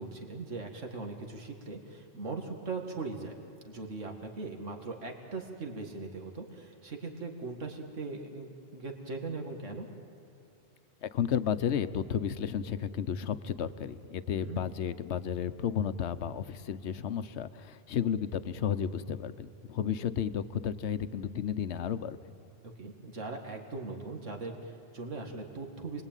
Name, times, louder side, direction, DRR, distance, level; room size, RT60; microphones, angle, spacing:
voice 1, 0.0-3.4 3.6-9.9 14.4-14.6 22.8-26.0, right 3 dB, 80° right, 3 dB, 2.4 m, -40 dB
voice 2, 11.0-22.2, left 8 dB, 65° left, 12 dB, 1.1 m, -32 dB
29.5 x 21.5 x 9.1 m, 2.7 s
omnidirectional pair, 1.3 m